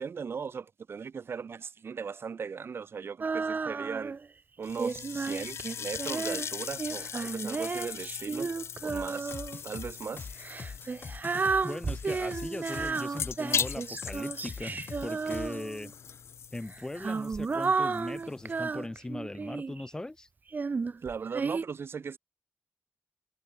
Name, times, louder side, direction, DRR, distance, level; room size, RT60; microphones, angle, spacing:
voice 1, 0.0-4.2 4.6-8.5 8.8-9.3 9.6-10.3 21.0-22.2, right 6 dB, 65° right, 2.3 m, -38 dB
Female singing, 3.2-4.3 4.8-9.6 10.4-15.9 16.7-19.8 20.5-21.6, right 4 dB, 40° right, 0.9 m, -33 dB
sound 1, 4.6-18.9, left 8 dB, 85° left, 0.4 m, -40 dB
sound 2, 8.9-15.7, left 5 dB, 55° left, 4.4 m, -43 dB
voice 2, 11.6-15.9 16.5-20.3, left 2 dB, 15° left, 0.9 m, -39 dB
wide cardioid pair, 130°, 4 cm